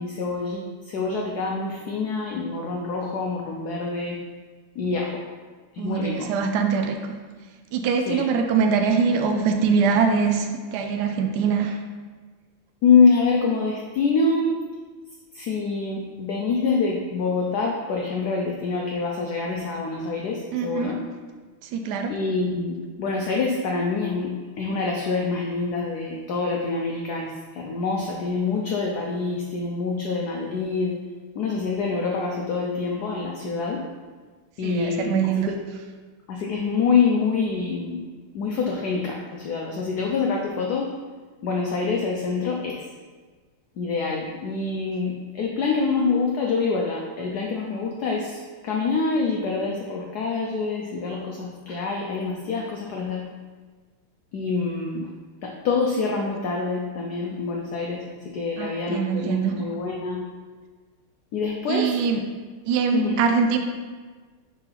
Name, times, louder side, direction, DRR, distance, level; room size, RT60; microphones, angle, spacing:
voice 1, 0.0-4.2 4.8-5.1 5.7-6.3 8.1-8.2 12.8-14.6 15.3-21.0 22.1-31.0 31.4-33.8 34.6-35.6 36.3-38.0 38.3-40.9 41.4-42.9 43.8-48.4 48.6-53.3 54.3-55.1 55.4-60.2 61.3-61.9 62.9-63.2, left 4 dB, 70° left, 0 dB, 0.9 m, -25 dB
voice 2, 5.8-7.1 7.7-11.8 20.5-20.9 21.7-22.1 34.6-35.5 58.6-59.6 61.7-62.2 62.7-63.6, right 6 dB, 85° right, 5 dB, 0.9 m, -23 dB
4.8 x 4.1 x 5.6 m, 1.4 s
omnidirectional pair, 2.4 m